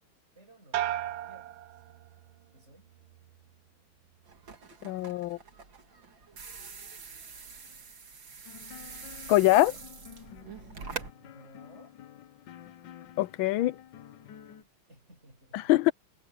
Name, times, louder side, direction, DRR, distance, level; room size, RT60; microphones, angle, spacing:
voice 1, 0.3-1.8 2.5-2.9 8.7-9.7 10.5-12.0 12.9-13.4 13.8-13.9 14.2-14.3 14.6-15.7, right 1 dB, 30° right, 7.6 m, -59 dB
sound 1, 0.7-2.5 2.9-3.4, right 13 dB, 85° right, 1.6 m, -36 dB
sound 2, 4.3-11.1, right 5 dB, 65° right, 3.2 m, -44 dB
voice 2, 4.8-5.4 9.3-9.7 13.2-13.8 15.5-15.9, left 16 dB, 80° left, 1.4 m, -23 dB
sound 3, 8.5-14.6, left 10 dB, 65° left, 1.5 m, -50 dB
omnidirectional pair, 2.2 m